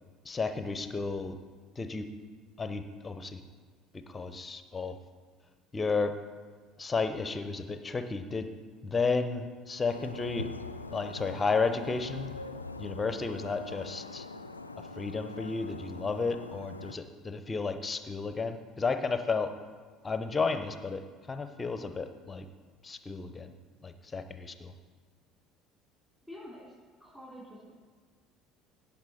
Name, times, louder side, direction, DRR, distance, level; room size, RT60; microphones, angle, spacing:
voice 1, 0.2-1.4 1.8-2.1 2.6-3.4 4.1-5.0 5.7-6.1 6.8-8.5 8.8-10.5 10.9-12.3 12.8-14.3 14.8-19.5 20.0-21.0 21.3-22.5 22.8-23.5 23.8-24.7, left 4 dB, 20° left, 10 dB, 0.8 m, -32 dB
sound 1, 9.9-17.0, left 3 dB, 85° left, 0.3 m, -43 dB
voice 2, 26.3-26.7 27.0-27.7, equal, 5° right, -7 dB, 3.2 m, -47 dB
16.5 x 5.8 x 4.3 m, 1.5 s
figure-of-eight pair, 60°, 0 cm